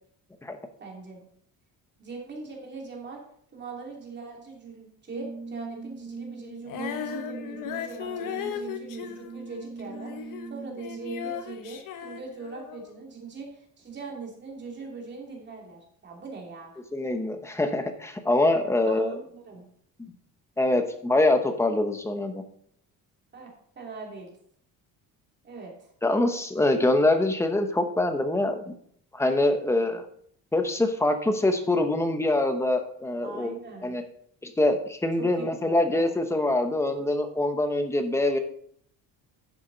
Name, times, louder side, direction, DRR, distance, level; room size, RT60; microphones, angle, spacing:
voice 1, 0.8-1.3 2.0-3.2 3.5-16.7 18.9-19.7 23.3-24.3 25.4-25.7 33.2-33.9 35.2-36.1, right 3 dB, 30° right, -1 dB, 2.9 m, -41 dB
Brass instrument, 5.1-11.5, right 3 dB, 50° right, 4.1 m, -41 dB
Female singing, 6.7-10.5 10.8-12.9, left 8 dB, 60° left, 1.2 m, -37 dB
voice 2, 16.9-19.2 20.0-20.1 20.6-22.4 26.0-28.7 29.1-30.0 30.5-33.5 33.8-34.0 34.4-38.4, left 2 dB, 5° left, 6 dB, 0.9 m, -24 dB
11.0 x 7.2 x 4.0 m, 0.63 s
cardioid pair, 165°, 37 cm